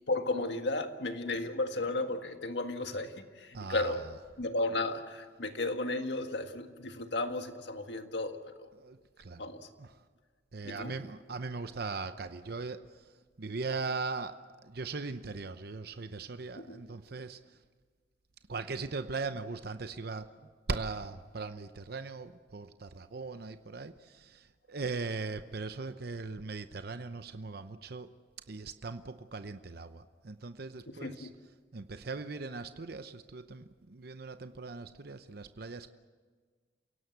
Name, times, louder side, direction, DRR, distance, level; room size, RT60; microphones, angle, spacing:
voice 1, 0.1-4.0 4.4-8.7 9.4-9.7 10.6-10.9 16.6-16.8 31.0-31.3, left 2 dB, 75° left, 6 dB, 1.7 m, -34 dB
voice 2, 3.5-4.0 8.7-9.4 9.8-9.9 10.5-12.9 13.4-14.4 14.6-17.4 18.5-28.1 28.5-31.3 31.7-35.9, right 3 dB, 60° right, 10 dB, 0.8 m, -39 dB
28.0 x 17.5 x 8.1 m, 1.5 s
head